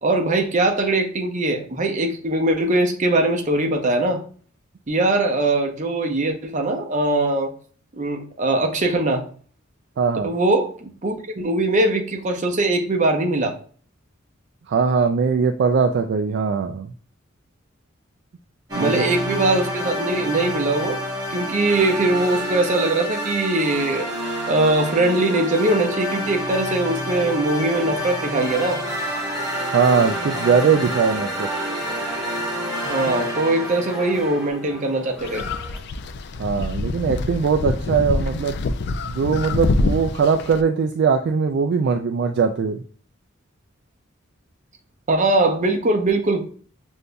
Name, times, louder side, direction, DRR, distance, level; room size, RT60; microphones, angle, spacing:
voice 1, 0.0-4.2 4.9-7.5 8.0-9.3 10.2-13.5 18.8-21.0 21.3-24.1 24.5-28.8 32.8-35.4 45.1-46.4, right 2 dB, 40° right, 0.7 m, -21 dB
voice 2, 10.0-10.3 14.7-16.9 18.7-19.0 29.7-31.5 33.0-33.1 36.4-38.6 39.0-42.8, right 5 dB, 55° right, 0.3 m, -20 dB
sound 1, 18.7-34.5, equal, 20° right, 1.7 m, -28 dB
sound 2, 27.7-35.8, right 1 dB, 5° right, 0.7 m, -36 dB
sound 3, 35.2-40.6, left 3 dB, 55° left, 0.3 m, -25 dB
6.7 x 2.6 x 2.2 m
head